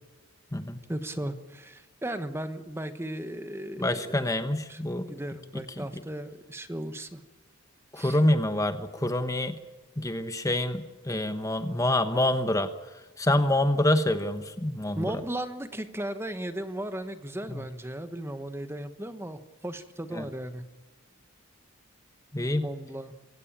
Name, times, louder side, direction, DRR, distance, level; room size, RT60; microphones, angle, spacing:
voice 1, 0.9-4.1 4.7-7.2 7.9-8.2 14.9-20.6 22.6-23.1, right 1 dB, 10° right, 10 dB, 1.1 m, -36 dB
voice 2, 3.8-5.1 7.9-9.6 10.0-12.7 13.2-15.1 20.1-20.2 22.3-22.7, left 1 dB, 15° left, 9 dB, 1.0 m, -26 dB
26.0 x 16.5 x 8.8 m, 1.2 s
head